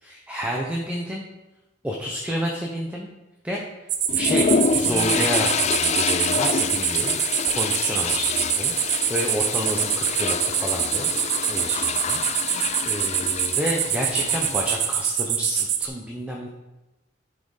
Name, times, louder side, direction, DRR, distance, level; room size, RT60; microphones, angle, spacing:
voice 1, 0.0-1.2 1.8-3.1 3.4-3.6 4.1-4.4 4.7-11.1 11.5-12.2 12.5-16.5, equal, 5° right, -2 dB, 0.8 m, -30 dB
sound 1, 3.9-15.9, right 9 dB, 60° right, 0.8 m, -25 dB
sound 2, 4.1-15.1, left 6 dB, 35° left, 0.3 m, -27 dB
Drum, 4.8-7.4, right 1 dB, 80° left, 1.7 m, -41 dB
10.5 x 4.4 x 4.9 m, 1.0 s
head